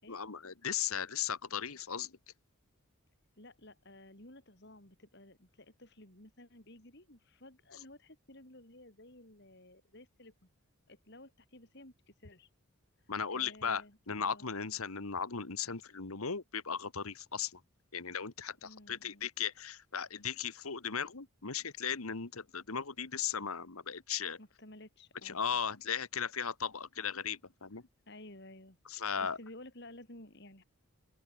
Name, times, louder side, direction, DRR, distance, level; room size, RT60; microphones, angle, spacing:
voice 1, 0.1-2.2 13.1-17.6 17.9-24.4 25.2-27.8 28.9-29.4, left 7 dB, 80° left, 1.5 m, -37 dB
voice 2, 3.4-10.3 10.9-12.5 13.3-14.5 18.6-19.3 24.4-25.4 28.1-30.6, left 1 dB, 50° left, 4.5 m, -54 dB
open air
head